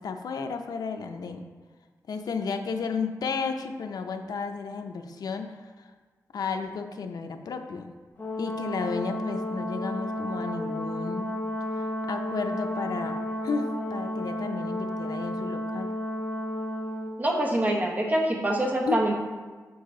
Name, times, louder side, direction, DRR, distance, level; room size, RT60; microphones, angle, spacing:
voice 1, 0.0-1.4 2.1-5.9 6.3-7.9 8.4-11.3 11.8-13.2 13.4-15.9 18.9-19.0, left 5 dB, 90° left, 6 dB, 0.5 m, -33 dB
Brass instrument, 8.2-17.1, left 1 dB, 30° left, 0.9 m, -32 dB
voice 2, 17.2-19.1, right 1 dB, 25° right, 0 dB, 1.0 m, -25 dB
7.0 x 4.7 x 3.7 m, 1.4 s
wide cardioid pair, 120°, 6 cm